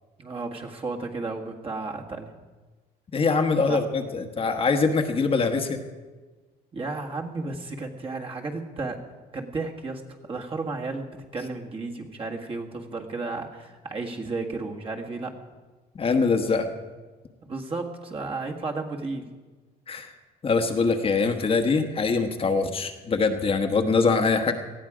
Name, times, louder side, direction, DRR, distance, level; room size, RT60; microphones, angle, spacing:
voice 1, 0.2-2.3 3.7-3.8 6.7-9.0 9.3-15.3 17.5-19.3, right 3 dB, 35° right, 1 dB, 1.8 m, -33 dB
voice 2, 3.1-5.8 15.9-16.7 19.9-20.1 20.4-24.5, left 4 dB, 35° left, 5 dB, 1.3 m, -23 dB
19.0 x 13.5 x 5.0 m, 1.3 s
cardioid pair, 110°, 17 cm